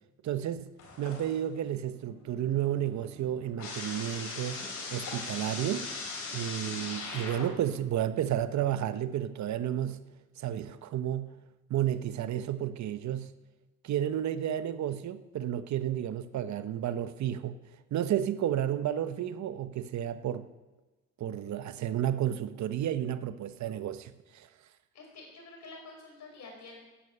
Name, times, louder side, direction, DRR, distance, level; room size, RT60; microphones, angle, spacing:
voice 1, 0.2-0.7 1.0-5.9 6.3-10.1 10.4-11.4 11.7-13.3 13.8-17.6 17.9-20.5 21.2-24.5, right 11 dB, 70° right, 0.8 m, -32 dB
sound 1, 0.8-1.6 2.0-7.8, left 3 dB, 80° left, 4.5 m, -40 dB
voice 2, 24.9-26.8, left 3 dB, 60° left, 5.1 m, -48 dB
11.0 x 8.6 x 8.5 m
cardioid pair, 90°, 30 cm